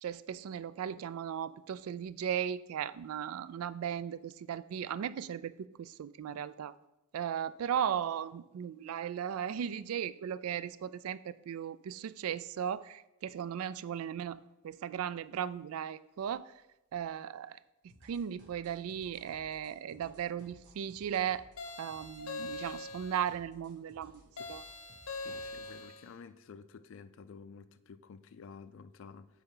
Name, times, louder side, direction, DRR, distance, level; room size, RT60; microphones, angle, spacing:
voice 1, 0.0-5.5 5.8-6.8 7.1-16.5 16.9-17.6 18.0-21.5 21.8-24.1 24.5-24.6, right 9 dB, 75° right, 0.3 m, -36 dB
sound 1, 17.9-25.8, equal, 55° right, 1.7 m, -60 dB
sound 2, 21.6-23.3 24.4-26.1, left 3 dB, 85° left, 0.8 m, -43 dB
voice 2, 25.2-29.3, left 5 dB, 60° left, 0.4 m, -51 dB
8.3 x 4.4 x 3.8 m
head